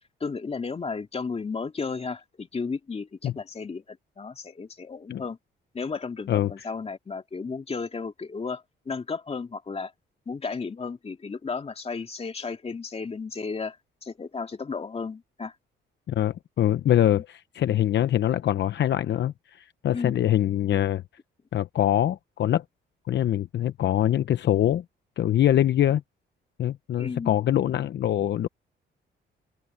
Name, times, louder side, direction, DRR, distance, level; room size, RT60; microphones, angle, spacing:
voice 1, 0.2-5.4 5.7-9.9 10.3-13.8 14.0-15.5 17.1-17.2 19.9-20.2 27.0-27.4, left 4 dB, 30° left, 2.6 m, -34 dB
voice 2, 6.3-6.6 16.1-21.0 21.5-22.6 23.1-24.8 25.2-26.0 26.6-28.5, left 11 dB, 65° left, 0.9 m, -24 dB
open air
cardioid pair, 90°, 20 cm